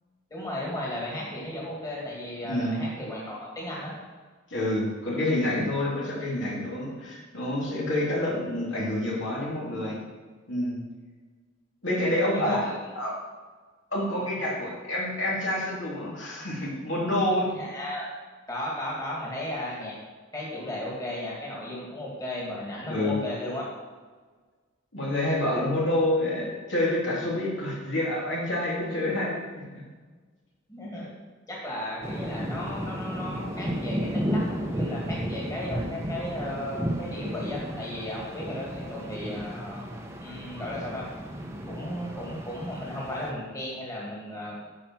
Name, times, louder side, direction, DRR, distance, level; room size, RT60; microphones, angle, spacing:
voice 1, 0.3-4.0 12.3-12.8 17.5-18.1 18.5-20.0 20.3-23.7 30.7-31.1 31.5-39.9 40.2-41.0 41.7-44.5, left 1 dB, 15° left, -5 dB, 2.4 m, -35 dB
voice 2, 2.4-2.8 4.5-10.0 10.5-10.8 11.8-13.1 13.9-17.5 22.9-23.2 24.9-29.4, left 1 dB, 65° left, -5 dB, 3.1 m, -28 dB
sound 1, 32.0-43.3, equal, 15° right, 1.0 m, -33 dB
11.5 x 5.0 x 6.2 m, 1.4 s
head